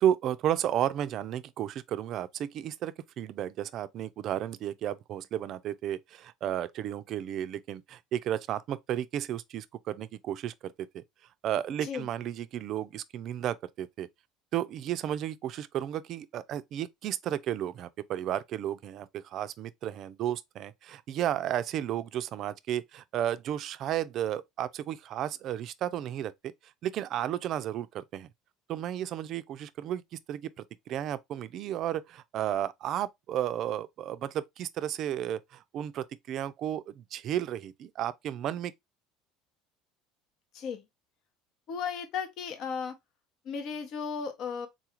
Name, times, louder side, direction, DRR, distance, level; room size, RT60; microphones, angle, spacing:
voice 1, 0.0-11.0 11.4-14.1 14.5-26.5 26.8-28.3 28.7-30.0 30.3-30.5 30.9-38.7, right 11 dB, 55° right, 0.3 m, -33 dB
voice 2, 41.7-42.9 43.4-44.7, left 6 dB, 60° left, 0.8 m, -35 dB
3.8 x 2.4 x 2.9 m
supercardioid pair, 105°, 0 cm